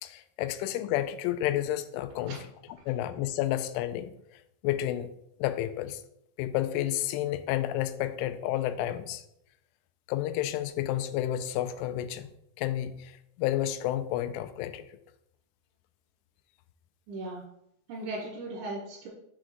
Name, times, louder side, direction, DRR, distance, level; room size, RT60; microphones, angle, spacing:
voice 1, 0.0-2.4 2.9-4.1 4.6-5.1 5.4-6.0 6.4-9.2 10.1-12.3 12.6-14.8, left 13 dB, 85° left, 10 dB, 2.9 m, -30 dB
voice 2, 17.1-17.4 17.9-19.1, right 2 dB, 65° right, -7 dB, 3.2 m, -37 dB
7.1 x 3.8 x 4.5 m, 0.77 s
omnidirectional pair, 5.6 m